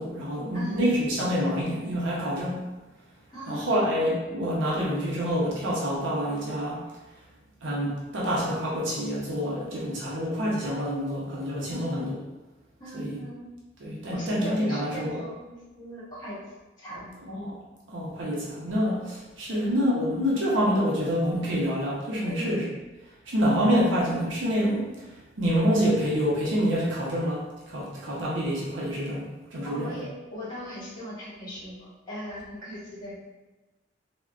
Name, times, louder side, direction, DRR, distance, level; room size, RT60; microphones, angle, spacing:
voice 1, 0.0-2.6 3.5-6.8 7.6-12.1 12.9-13.2 13.8-15.2 17.3-17.5 17.9-22.7 23.3-30.0, equal, 80° right, -5 dB, 0.6 m, -27 dB
voice 2, 3.3-3.9 11.7-11.9 12.8-13.5 14.1-16.4 16.8-17.1 19.5-19.6 22.2-22.5 29.6-33.1, equal, 20° left, -9 dB, 1.1 m, -39 dB
3.5 x 2.1 x 2.3 m, 1.1 s
head